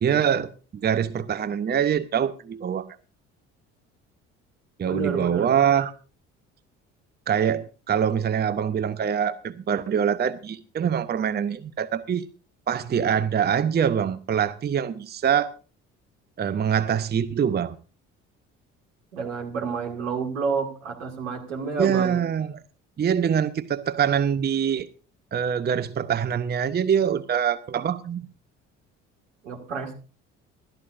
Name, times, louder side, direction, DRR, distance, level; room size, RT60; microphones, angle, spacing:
voice 1, 0.0-2.9 4.8-5.9 7.3-12.3 12.7-15.5 16.4-17.8 21.8-22.6 23.0-24.9 25.3-28.2, right 8 dB, 25° right, 0.7 m, -24 dB
voice 2, 4.8-5.5 19.1-22.2 29.4-29.9, right 5 dB, 80° right, 2.2 m, -29 dB
20.5 x 12.5 x 2.6 m
figure-of-eight pair, 55°, 38 cm